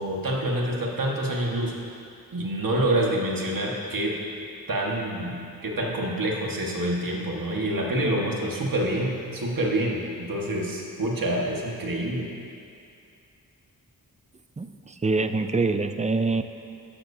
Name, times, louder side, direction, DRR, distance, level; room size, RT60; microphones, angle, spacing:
voice 1, 0.0-1.7 2.3-4.1 4.7-12.3, right 1 dB, 65° right, -2 dB, 1.6 m, -27 dB
voice 2, 14.6-16.4, right 3 dB, 20° right, 9 dB, 0.5 m, -25 dB
13.5 x 11.5 x 2.8 m, 2.5 s
wide cardioid pair, 80°, 37 cm